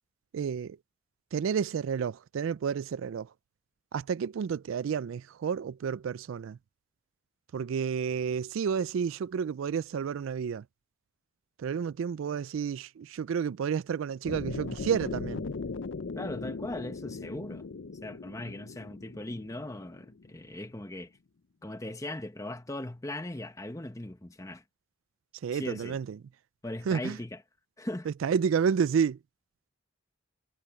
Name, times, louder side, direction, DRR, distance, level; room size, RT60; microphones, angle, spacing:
voice 1, 0.3-0.8 1.3-3.3 3.9-6.6 7.5-10.6 11.6-15.4 25.4-26.2 26.9-27.2 28.1-29.2, right 7 dB, 75° right, 0.3 m, -30 dB
sound 1, 14.2-20.4, left 4 dB, 65° left, 0.6 m, -39 dB
voice 2, 16.1-17.6 18.0-21.1 21.6-24.6 25.5-26.0 26.6-27.4 27.8-28.1, left 1 dB, 15° left, 0.9 m, -39 dB
head